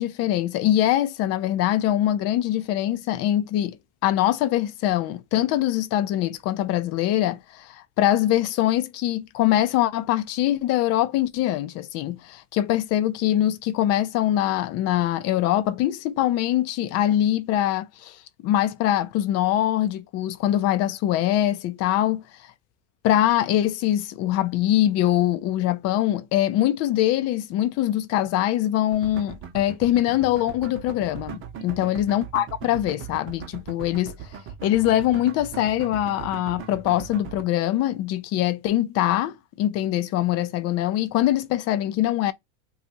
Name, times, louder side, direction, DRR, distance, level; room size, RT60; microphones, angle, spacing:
voice 1, 0.0-3.8 4.0-18.2 18.4-22.2 23.0-34.1 34.6-42.3, left 13 dB, 45° left, 0.6 m, -23 dB
sound 1, 28.9-37.4, right 8 dB, 35° right, 0.8 m, -39 dB
2.5 x 2.4 x 4.1 m
hypercardioid pair, 100°, 34 cm